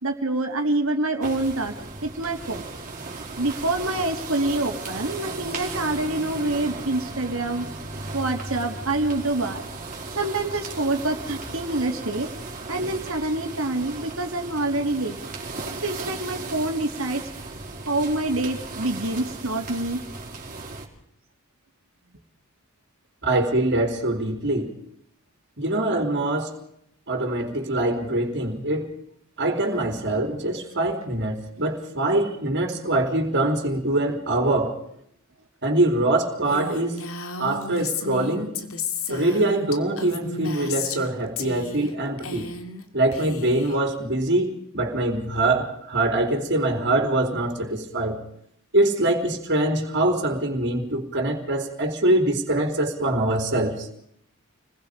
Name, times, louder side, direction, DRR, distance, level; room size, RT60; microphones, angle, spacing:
voice 1, 0.0-1.7 2.0-2.6 3.4-7.7 8.1-9.6 10.2-12.3 12.7-15.2 15.6-17.2 17.9-20.0, right 2 dB, 70° right, 3 dB, 3.4 m, -26 dB
sound 1, 1.2-20.9, right 3 dB, 40° right, 4.6 m, -36 dB
voice 2, 23.2-24.7 25.6-26.5 27.1-28.9 29.4-34.8 35.6-37.0 37.4-38.5 39.1-42.5 42.9-48.2 48.7-53.9, right 1 dB, 55° right, 3 dB, 4.1 m, -23 dB
Female speech woman speaking, 36.5-41.1 41.4-41.9 42.2-42.8 43.1-43.8, left 4 dB, 85° left, 2.5 m, -33 dB
29.5 x 21.0 x 5.3 m, 0.71 s
head